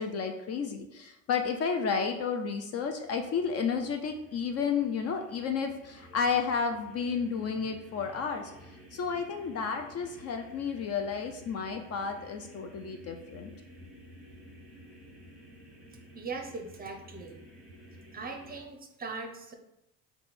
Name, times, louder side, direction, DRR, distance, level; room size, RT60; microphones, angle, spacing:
voice 1, 0.0-8.5 8.9-13.5, left 6 dB, 40° left, 5 dB, 0.4 m, -32 dB
sound 1, 2.4-18.6, equal, ahead, 1.1 m, -53 dB
voice 2, 16.1-17.4 18.1-19.5, right 4 dB, 20° right, 3 dB, 0.6 m, -40 dB
4.2 x 2.2 x 4.2 m, 0.87 s
supercardioid pair, 85°, 41 cm